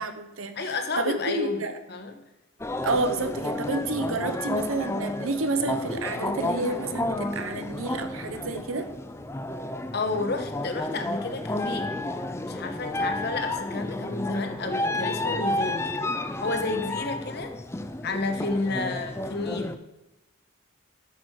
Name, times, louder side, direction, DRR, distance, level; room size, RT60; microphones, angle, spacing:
voice 1, 0.0-0.6 1.0-1.7 2.8-8.9, right 3 dB, 75° right, 9 dB, 0.8 m, -29 dB
voice 2, 0.5-2.3 9.9-11.9 12.4-15.9 16.4-17.5 18.0-19.8, left 3 dB, 50° left, 7 dB, 0.9 m, -31 dB
sound 1, 2.6-19.8, left 2 dB, 10° left, 0.3 m, -31 dB
8.1 x 6.2 x 4.7 m, 1.0 s
head